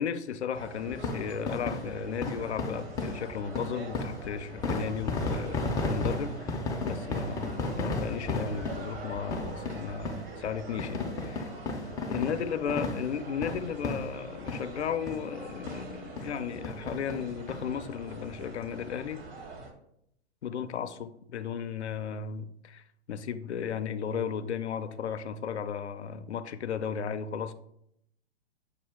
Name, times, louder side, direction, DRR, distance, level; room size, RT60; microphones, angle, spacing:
voice 1, 0.0-6.6 6.8-11.5 12.1-19.2 20.4-27.5, left 7 dB, 85° left, 10 dB, 0.5 m, -35 dB
sound 1, 0.5-19.7, right 3 dB, 60° right, 1.2 m, -45 dB
sound 2, 0.9-14.8 15.1-15.2 15.7-15.8 16.2-16.3 16.6-17.6 18.0-18.1 18.3-18.4, left 3 dB, 10° left, 0.4 m, -34 dB
6.6 x 2.3 x 3.5 m, 0.76 s
figure-of-eight pair, 115°, 33 cm